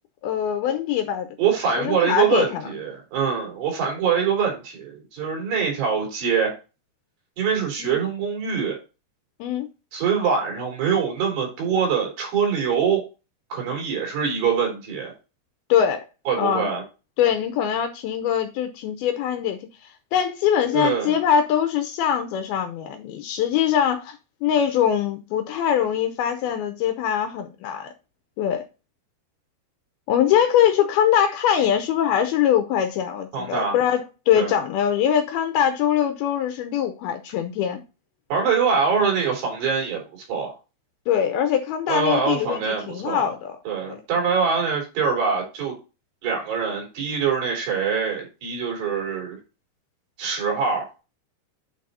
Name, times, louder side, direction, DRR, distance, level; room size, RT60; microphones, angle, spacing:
voice 1, 0.2-1.3 1.8-2.6 7.8-8.0 9.4-9.7 15.7-16.0 16.4-16.7 17.2-19.7 20.1-24.2 24.4-27.9 28.4-28.6 30.1-34.0 34.3-37.8 41.1-43.5 43.9-44.0, left 9 dB, 75° left, 2.5 m, -22 dB
voice 2, 1.4-6.5 7.4-8.8 9.9-13.0 13.5-15.1 16.3-16.8 20.7-21.2 33.3-33.8 34.3-34.5 38.3-40.0 40.3-40.5 41.9-43.3 43.7-45.7 46.2-49.4 50.2-50.9, right 6 dB, 85° right, 5.4 m, -24 dB
8.7 x 4.0 x 4.1 m
omnidirectional pair, 4.7 m